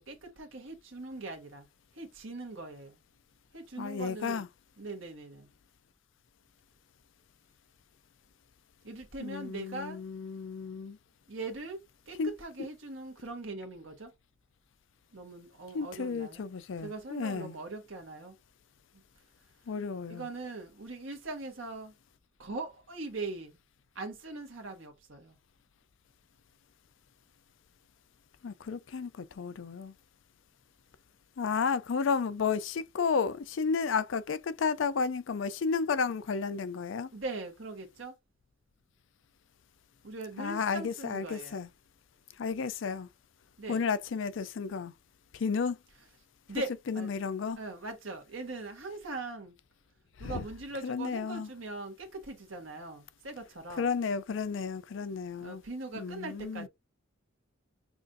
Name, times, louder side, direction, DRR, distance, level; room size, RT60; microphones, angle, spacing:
voice 1, 0.0-1.7 1.9-3.0 3.5-4.5 4.8-5.5 8.8-10.0 11.3-11.8 12.1-14.1 15.1-16.4 16.8-18.3 20.1-21.9 22.4-23.6 23.9-25.3 37.1-38.1 40.0-41.6 43.6-43.8 46.5-47.1 47.6-49.6 50.2-53.9 55.4-56.7, right 3 dB, 80° right, 1.4 m, -41 dB
voice 2, 3.8-4.5 9.2-11.0 12.2-12.3 15.7-17.6 19.7-20.3 28.4-29.9 31.4-37.1 40.4-41.7 42.4-43.1 43.7-44.9 45.3-45.8 46.9-47.6 50.2-50.4 50.8-51.5 53.8-55.6 55.9-56.7, left 5 dB, 70° left, 0.4 m, -32 dB
6.1 x 2.5 x 2.6 m
head